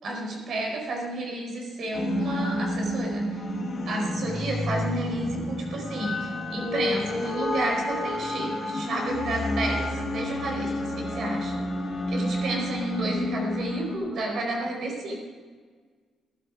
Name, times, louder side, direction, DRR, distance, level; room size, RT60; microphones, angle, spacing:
voice 1, 0.0-3.4 3.9-11.6 12.1-15.2, right 2 dB, 65° right, 0 dB, 4.7 m, -31 dB
sound 1, 1.9-14.0, left 1 dB, 40° left, 3.6 m, -30 dB
15.5 x 12.5 x 5.0 m, 1.5 s
cardioid pair, 90°, 0 cm